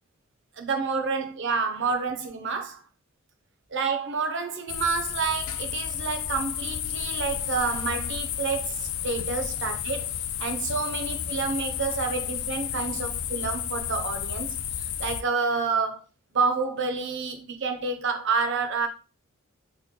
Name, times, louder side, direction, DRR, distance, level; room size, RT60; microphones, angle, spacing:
voice 1, 0.6-2.8 3.7-10.1 10.4-16.0 16.3-18.9, right 4 dB, 55° right, 0.6 m, -29 dB
sound 1, 4.7-15.2, left 10 dB, 70° left, 0.3 m, -32 dB
3.2 x 2.1 x 3.6 m
head